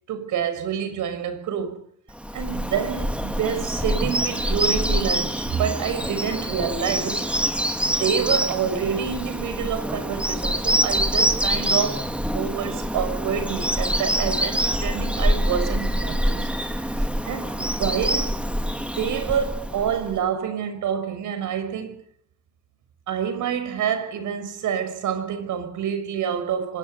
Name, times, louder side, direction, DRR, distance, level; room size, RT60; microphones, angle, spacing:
voice 1, 0.1-1.8 2.3-7.3 7.8-16.5 17.0-18.3 18.7-22.0 23.1-26.8, right 8 dB, 80° right, 6.0 m, -27 dB
Bird vocalization bird call bird song, 2.2-20.2, equal, 5° right, 3.2 m, -25 dB
26.0 x 18.5 x 8.0 m
cardioid pair, 90°, 30 cm